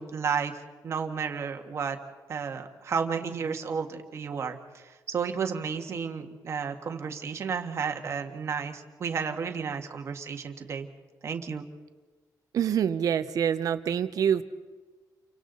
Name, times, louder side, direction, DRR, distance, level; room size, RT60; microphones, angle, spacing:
voice 1, 0.0-2.0 2.3-10.9 11.2-11.6, right 6 dB, 40° right, 4 dB, 1.6 m, -32 dB
voice 2, 12.5-14.4, right 8 dB, 60° right, 11 dB, 1.0 m, -26 dB
30.0 x 25.0 x 4.0 m, 1.3 s
cardioid pair, 155°, 7 cm